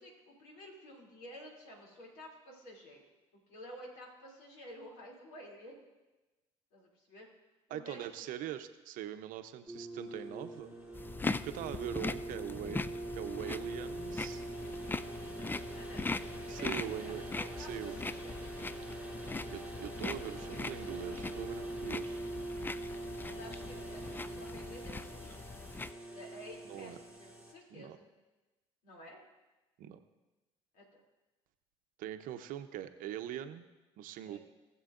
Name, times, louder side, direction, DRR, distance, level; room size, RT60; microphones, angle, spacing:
voice 1, 0.0-3.0 3.3-5.8 6.7-7.3 7.7-8.3 15.7-18.4 22.8-25.5 26.1-28.1 28.8-29.2 30.7-30.8 34.2-34.4, equal, 70° left, -2 dB, 3.0 m, -52 dB
voice 2, 7.7-10.8 11.4-12.8 13.1-14.4 16.5-17.2 17.6-18.0 19.5-22.2 26.6-27.0 27.7-28.0 29.8-30.0 32.0-33.6 34.0-34.4, right 11 dB, 65° right, 9 dB, 0.8 m, -42 dB
sound 1, 9.7-27.5, right 2 dB, 5° right, 3.1 m, -43 dB
sound 2, 10.9-25.9, left 3 dB, 15° left, 0.4 m, -41 dB
19.0 x 7.5 x 2.6 m, 1.1 s
hypercardioid pair, 60°, 15 cm